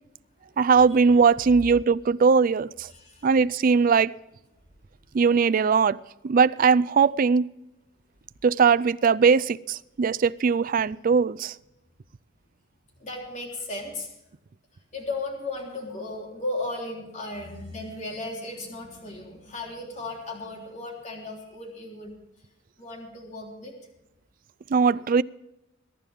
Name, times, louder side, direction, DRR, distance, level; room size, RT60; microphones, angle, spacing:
voice 1, 0.6-2.9 3.2-4.1 5.1-6.0 6.2-7.5 8.4-11.5 24.7-25.2, right 5 dB, 45° right, 0.4 m, -20 dB
voice 2, 2.9-3.2 13.0-14.1 14.9-22.2 22.8-23.7, left 2 dB, 40° left, 3.5 m, -35 dB
22.0 x 10.5 x 3.5 m
head